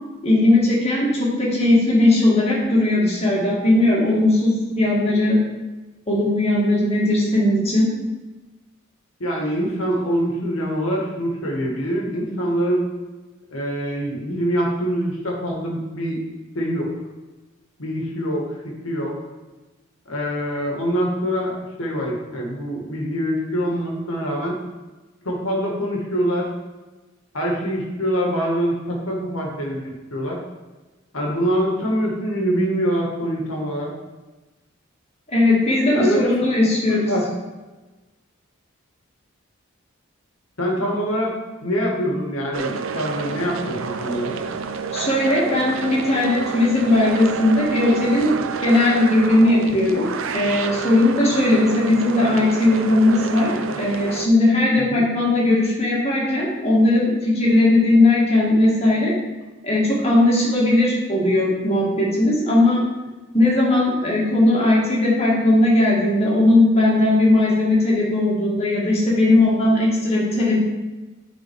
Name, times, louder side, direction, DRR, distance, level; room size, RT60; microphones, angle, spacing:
voice 1, 0.2-5.4 6.1-7.9 35.3-37.1 44.9-53.5 53.8-59.1 59.6-62.8 63.3-70.6, left 2 dB, 30° left, -4 dB, 2.1 m, -18 dB
voice 2, 9.2-12.9 13.5-16.2 16.5-16.9 17.8-19.2 20.1-24.6 25.2-26.5 27.3-30.4 31.1-33.9 35.9-36.4 36.8-37.3 40.6-44.4 54.8-55.0, equal, 90° left, -1 dB, 1.8 m, -24 dB
sound 1, 42.5-54.3, right 5 dB, 75° right, 0.6 m, -29 dB
9.6 x 4.3 x 4.7 m, 1.2 s
head